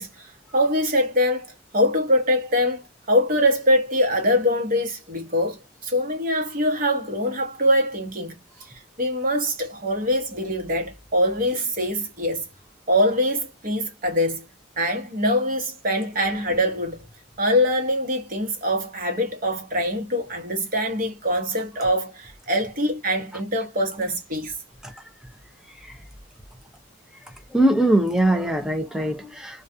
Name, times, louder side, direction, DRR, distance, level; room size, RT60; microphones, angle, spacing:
voice 1, 0.0-2.8 3.1-8.3 8.6-12.4 12.9-14.4 14.8-17.0 17.4-24.5, equal, 45° right, 1.0 m, -23 dB
voice 2, 27.5-29.6, right 1 dB, 5° right, 0.5 m, -21 dB
2.3 x 2.3 x 2.5 m
head